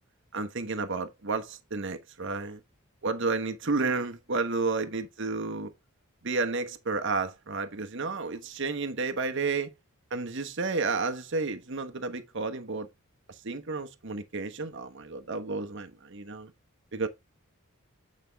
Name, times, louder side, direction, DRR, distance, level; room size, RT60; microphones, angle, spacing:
voice 1, 0.3-2.6 3.0-5.7 6.2-9.7 10.1-12.9 13.4-16.5 16.9-17.1, right 3 dB, 55° right, 1.1 m, -31 dB
9.2 x 5.2 x 3.4 m
head